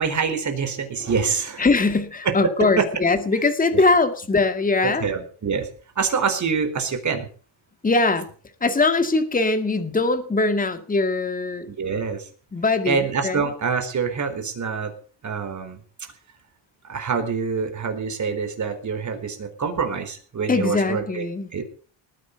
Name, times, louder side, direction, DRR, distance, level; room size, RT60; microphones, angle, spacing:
voice 1, 0.0-1.7 2.2-2.3 2.6-2.9 3.7-3.8 4.8-5.7 6.0-7.3 11.7-12.3 12.9-14.9 15.2-15.8 16.9-21.3 21.5-21.6, right 5 dB, 35° right, 7 dB, 4.5 m, -25 dB
voice 2, 1.6-5.1 7.8-8.3 8.6-11.7 12.5-13.5 20.5-21.5, left 3 dB, 15° left, 9 dB, 2.0 m, -21 dB
19.5 x 9.5 x 6.9 m, 0.42 s
cardioid pair, 140°, 47 cm